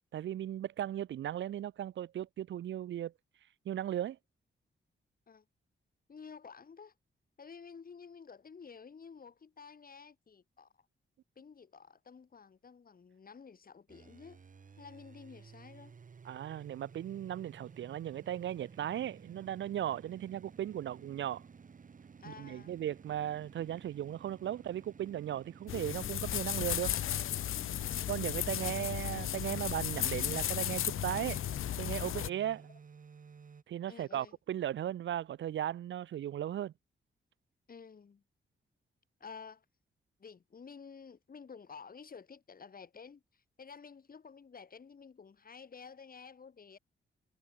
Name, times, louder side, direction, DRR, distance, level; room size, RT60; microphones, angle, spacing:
voice 1, 0.1-3.1 3.7-4.2 16.2-21.4 22.3-26.9 28.1-31.4 31.8-32.6 33.7-36.7, right 11 dB, 65° right, 0.4 m, -37 dB
voice 2, 6.1-6.9 7.4-10.8 11.4-14.4 14.8-16.0 22.2-22.7 27.9-28.2 32.2-32.4 33.9-34.4 37.7-38.2 39.2-39.7 40.2-46.8, left 5 dB, 45° left, 5.4 m, -52 dB
sound 1, 13.9-33.6, right 6 dB, 40° right, 1.6 m, -55 dB
sound 2, 25.7-32.3, left 11 dB, 85° left, 0.6 m, -35 dB
wide cardioid pair, 140°, 21 cm